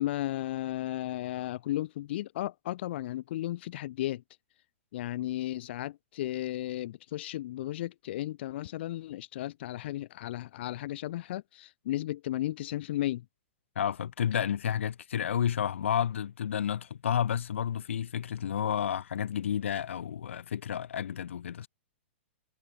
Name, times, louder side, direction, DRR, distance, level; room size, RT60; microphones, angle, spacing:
voice 1, 0.0-4.2 4.9-13.2, left 14 dB, 60° left, 1.3 m, -34 dB
voice 2, 13.8-21.7, left 9 dB, 80° left, 2.0 m, -31 dB
hypercardioid pair, 135°, 7 cm